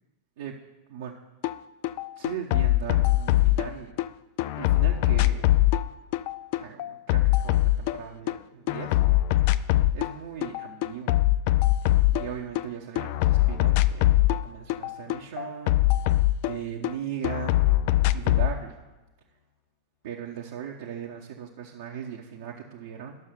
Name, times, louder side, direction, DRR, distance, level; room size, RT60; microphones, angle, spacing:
sound 1, 1.4-1.6 1.8-4.1 4.4-8.4 8.7-10.1 10.4-12.7 13.0-16.9 17.2-18.5, left 15 dB, 45° left, 0.3 m, -22 dB
voice 1, 2.2-4.0 4.6-5.6 6.6-9.0 9.9-11.2 11.8-16.0 16.4-17.7 18.1-18.8 20.0-23.2, right 8 dB, 55° right, -1 dB, 0.9 m, -38 dB
10.5 x 6.4 x 6.0 m, 1.1 s
figure-of-eight pair, 90°, 0 cm